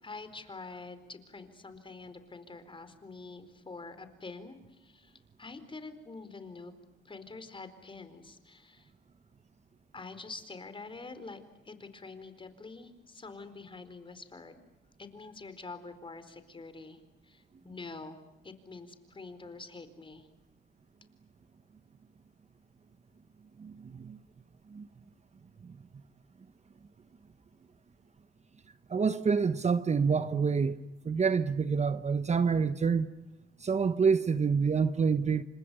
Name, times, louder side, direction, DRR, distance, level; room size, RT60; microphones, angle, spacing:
voice 1, 0.0-6.7 7.0-8.9 9.9-14.6 15.0-18.2 18.4-20.3, left 3 dB, 25° left, 4.3 m, -46 dB
voice 2, 23.6-24.2 24.7-24.9 28.9-33.1 33.6-35.4, right 5 dB, 35° right, 1.1 m, -27 dB
29.5 x 26.0 x 7.0 m
cardioid pair, 90°, 20 cm